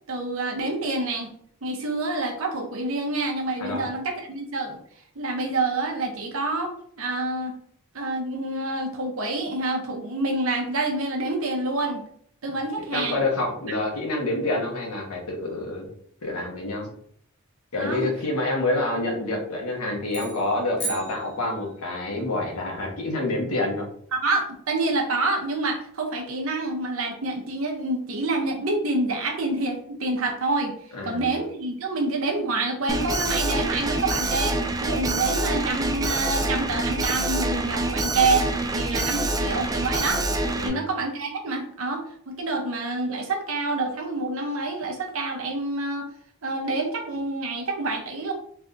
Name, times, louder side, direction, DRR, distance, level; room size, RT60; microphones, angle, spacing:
voice 1, 0.1-1.3 1.6-4.8 5.1-7.6 7.9-12.0 12.4-13.2 17.8-18.1 24.1-30.8 31.0-40.3 40.6-46.1 46.4-48.3, right 2 dB, 65° right, 2 dB, 0.8 m, -27 dB
voice 2, 12.9-15.9 16.2-16.9 17.7-23.9 30.9-31.3 40.5-40.8, left 2 dB, 85° left, -1 dB, 1.2 m, -27 dB
sound 1, 20.1-22.0, right 2 dB, 50° left, 1.0 m, -36 dB
Alarm, 32.9-40.7, right 2 dB, 15° right, 0.3 m, -26 dB
3.6 x 3.3 x 2.6 m, 0.63 s
head